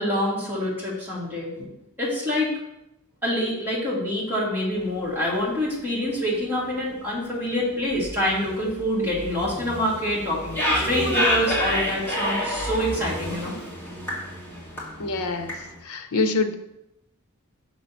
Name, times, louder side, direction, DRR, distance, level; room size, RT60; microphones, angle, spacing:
voice 1, 0.0-2.5 3.2-13.5, equal, 10° right, -7 dB, 2.2 m, -26 dB
sound 1, 4.8-5.3 5.8-5.9 6.1-6.2 6.5-6.6 6.9-15.8, left 1 dB, 10° left, 1.8 m, -29 dB
voice 2, 15.0-16.5, left 3 dB, 80° left, 9 dB, 0.6 m, -26 dB
6.0 x 5.8 x 4.2 m, 0.88 s
head